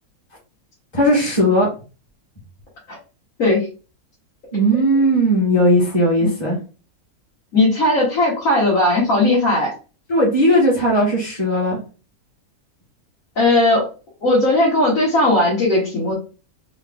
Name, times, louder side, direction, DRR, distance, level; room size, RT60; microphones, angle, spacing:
voice 1, 0.9-1.7 4.5-6.6 10.1-11.8, equal, 20° left, -6 dB, 1.1 m, -17 dB
voice 2, 7.5-9.7 13.4-13.9 14.2-16.1, left 2 dB, 70° left, -6 dB, 2.0 m, -17 dB
4.0 x 2.5 x 3.5 m, 0.34 s
omnidirectional pair, 1.5 m